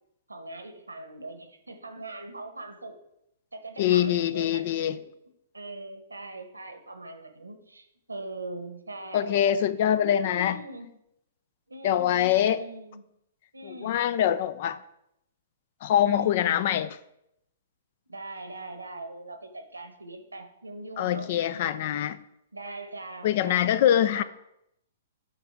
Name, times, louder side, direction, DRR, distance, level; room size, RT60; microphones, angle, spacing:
voice 1, 0.3-3.0 3.5-4.6 4.9-5.0 5.5-9.4 10.0-11.0 11.7-13.0 13.5-14.0 16.0-16.8 18.1-22.0 22.5-24.2, right 2 dB, 85° right, 1.1 m, -41 dB
voice 2, 3.8-5.0 9.1-10.6 11.8-12.6 13.7-14.8 15.8-17.0 21.0-22.2 23.2-24.2, left 10 dB, 50° left, 0.4 m, -24 dB
7.8 x 3.9 x 4.9 m
figure-of-eight pair, 115°, 0 cm